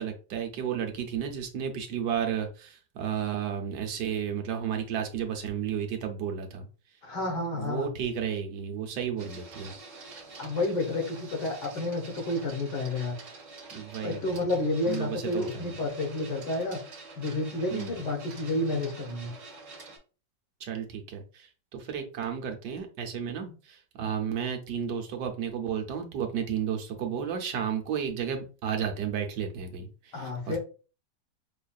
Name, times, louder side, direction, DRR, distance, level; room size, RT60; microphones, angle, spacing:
voice 1, 0.0-6.7 7.6-9.7 13.7-14.5 14.9-15.7 17.7-18.0 20.6-30.6, right 8 dB, 75° right, 4 dB, 1.3 m, -33 dB
voice 2, 7.0-7.9 10.4-13.1 14.0-16.8 17.1-19.3 30.1-30.6, left 2 dB, 70° left, 2 dB, 1.7 m, -30 dB
Printer, 9.2-20.0, right 3 dB, 50° right, 1.4 m, -47 dB
5.5 x 2.4 x 2.3 m, 0.35 s
omnidirectional pair, 1.9 m